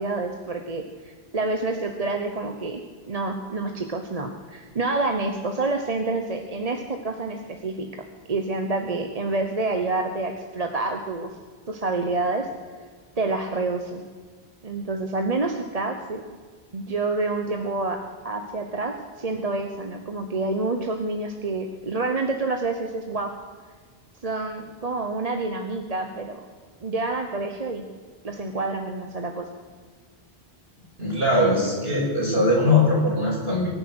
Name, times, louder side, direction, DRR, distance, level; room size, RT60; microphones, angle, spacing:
voice 1, 0.0-2.8 3.1-7.9 8.3-11.3 11.7-12.5 13.2-14.0 14.6-16.2 16.7-18.0 18.2-23.3 24.2-26.4 26.8-27.9 28.2-29.5, right 3 dB, 40° right, 4 dB, 1.0 m, -28 dB
voice 2, 31.0-33.7, left 2 dB, 70° right, -4 dB, 6.0 m, -21 dB
23.0 x 10.0 x 6.2 m, 1.5 s
omnidirectional pair, 1.0 m